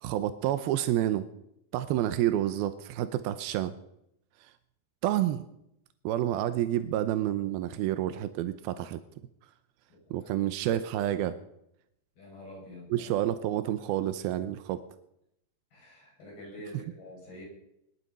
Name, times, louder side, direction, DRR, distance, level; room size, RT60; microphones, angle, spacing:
voice 1, 0.0-1.3 1.7-3.7 5.0-5.4 6.0-9.0 10.1-11.4 12.9-14.8 16.7-16.9, right 12 dB, 80° right, 11 dB, 2.2 m, -29 dB
voice 2, 12.2-13.1 15.7-17.4, equal, 55° left, -2 dB, 8.3 m, -46 dB
20.5 x 12.5 x 5.5 m, 0.79 s
omnidirectional pair, 5.1 m